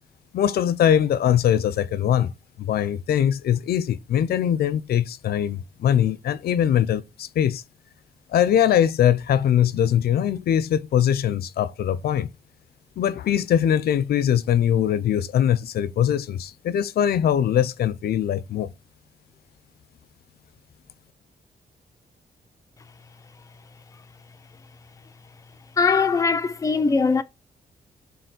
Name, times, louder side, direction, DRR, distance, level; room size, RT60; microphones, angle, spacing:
voice 1, 0.3-2.3 2.6-7.6 8.3-12.3 13.0-18.7, left 10 dB, 80° left, 0.6 m, -22 dB
voice 2, 25.8-27.2, left 4 dB, 20° left, 0.6 m, -20 dB
6.9 x 4.1 x 6.1 m
wide cardioid pair, 165°, 16 cm